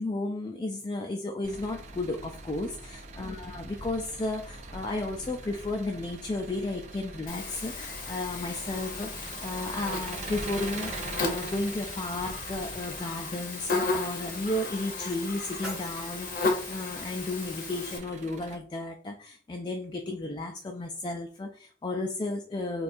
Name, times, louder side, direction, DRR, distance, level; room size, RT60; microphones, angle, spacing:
voice 1, 0.0-22.8, left 2 dB, 25° left, 3 dB, 0.3 m, -33 dB
Engine, 1.4-18.6, right 3 dB, 40° right, 0.4 m, -43 dB
Buzz, 7.3-18.0, left 3 dB, 50° left, 0.7 m, -34 dB
sound 1, 14.9-16.9, equal, 5° right, 1.5 m, -46 dB
4.2 x 2.3 x 2.6 m, 0.43 s
head